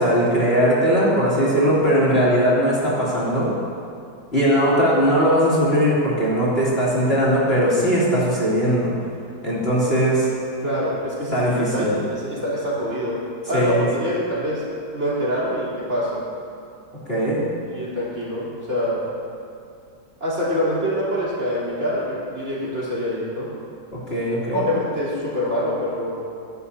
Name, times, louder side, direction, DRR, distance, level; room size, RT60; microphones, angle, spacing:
voice 1, 0.0-3.5 4.3-8.9 9.4-10.3 11.3-12.0 13.5-13.8 17.1-17.4 23.9-24.7, equal, 35° left, -8 dB, 3.5 m, -19 dB
voice 2, 10.6-13.2 13.5-14.6 14.9-16.2 17.6-19.1 20.2-23.5 24.5-26.3, equal, 40° right, -8 dB, 4.3 m, -25 dB
24.0 x 11.5 x 2.8 m, 2.4 s
omnidirectional pair, 1.9 m